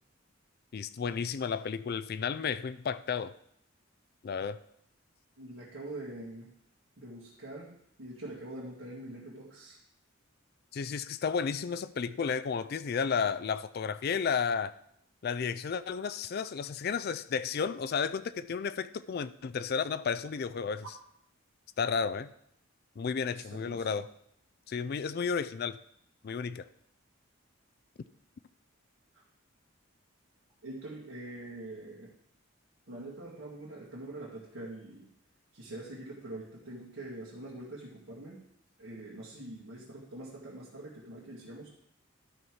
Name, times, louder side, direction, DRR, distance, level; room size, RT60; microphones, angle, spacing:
voice 1, 0.7-3.3 4.2-4.6 10.7-14.7 15.2-20.8 21.8-22.3 23.0-24.1 24.7-25.8 26.2-26.7, left 6 dB, 50° left, 14 dB, 0.3 m, -32 dB
voice 2, 5.4-6.5 7.0-7.7 8.0-9.8 23.3-24.0 30.6-32.1 32.9-35.1 35.5-38.4 38.8-41.7, right 1 dB, 75° right, -7 dB, 2.2 m, -44 dB
12.5 x 5.7 x 4.7 m, 0.72 s
head